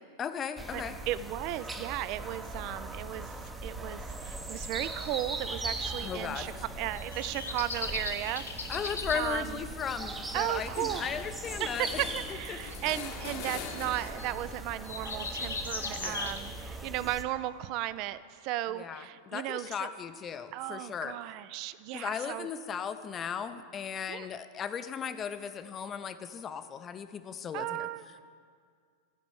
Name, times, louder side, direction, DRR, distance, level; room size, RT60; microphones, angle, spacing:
voice 1, 0.2-1.0 6.0-6.5 8.7-12.0 12.5-12.6 16.0-16.3 18.8-21.2 21.9-27.9, left 7 dB, 25° left, 11 dB, 0.5 m, -36 dB
sound 1, 0.6-17.2, right 2 dB, 10° right, 0.7 m, -40 dB
voice 2, 0.7-3.4 3.6-9.6 10.3-11.1 11.6-19.9 20.5-22.5 24.1-24.3 27.5-28.1, right 14 dB, 40° right, 16 dB, 0.3 m, -35 dB
sound 2, 4.8-5.1 6.9-9.2 11.6-11.9 12.7-14.3 14.8-16.4, left 3 dB, 75° left, 1.0 m, -38 dB
sound 3, 8.8-9.3 9.7-9.8 10.0-14.4 14.8-16.9, left 7 dB, 45° left, 0.9 m, -45 dB
12.5 x 5.1 x 6.9 m, 2.1 s
figure-of-eight pair, 90°, 0 cm